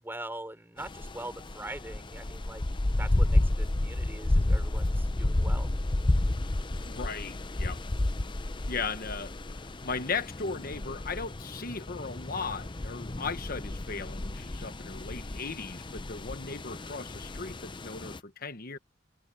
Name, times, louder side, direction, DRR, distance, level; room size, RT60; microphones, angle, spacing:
voice 1, 0.0-5.7, right 1 dB, 10° right, 4.4 m, -42 dB
sound 1, 0.8-18.2, left 1 dB, 25° left, 0.6 m, -31 dB
voice 2, 6.9-7.8 8.6-9.3 9.6-18.8, left 4 dB, 50° left, 1.1 m, -37 dB
head